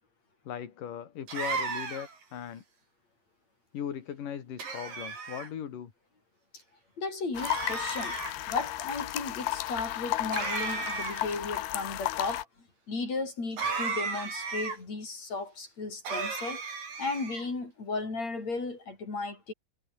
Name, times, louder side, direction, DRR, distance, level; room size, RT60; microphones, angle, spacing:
voice 1, 0.5-2.6 3.7-5.9, left 9 dB, 60° left, 4.0 m, -38 dB
sound 1, 1.3-2.2 4.6-5.5 7.4-8.3 10.3-11.4 13.6-14.8 16.0-17.5, right 5 dB, 65° right, 7.2 m, -34 dB
voice 2, 7.0-8.2 8.5-12.5 12.9-16.6 17.0-19.5, left 3 dB, 45° left, 8.7 m, -35 dB
sound 2, 7.3-12.4, left 14 dB, 85° left, 3.2 m, -33 dB
omnidirectional pair, 4.4 m